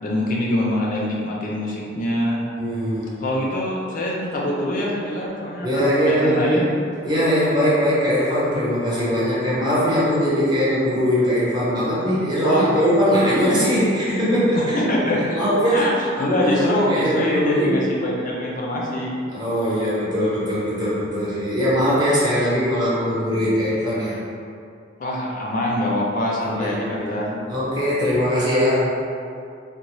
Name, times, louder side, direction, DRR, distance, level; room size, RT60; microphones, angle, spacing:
voice 1, 0.0-2.4 3.2-6.6 12.4-12.9 13.2-13.4 14.5-15.4 15.7-19.1 25.0-27.4, left 1 dB, 40° left, -3 dB, 0.4 m, -24 dB
voice 2, 2.6-3.2 5.6-6.7 7.0-14.8 15.3-15.9 16.2-17.8 19.3-24.2 26.4-26.8 27.5-28.8, equal, 20° right, -9 dB, 0.8 m, -21 dB
3.9 x 2.1 x 3.0 m, 2.4 s
head